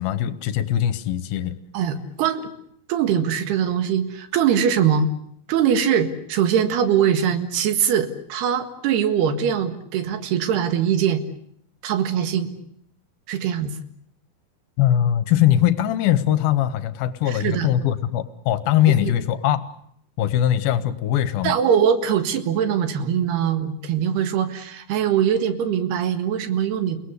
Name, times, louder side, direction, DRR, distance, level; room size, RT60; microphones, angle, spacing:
voice 1, 0.0-1.6 14.8-19.7 20.2-21.6, left 11 dB, 75° left, 14 dB, 2.8 m, -21 dB
voice 2, 1.7-2.5 2.9-5.1 5.5-11.2 11.8-12.5 13.3-13.8 17.3-17.7 19.0-19.1 21.4-27.0, right 8 dB, 85° right, 9 dB, 3.8 m, -22 dB
29.5 x 18.5 x 8.1 m, 0.69 s
omnidirectional pair, 4.5 m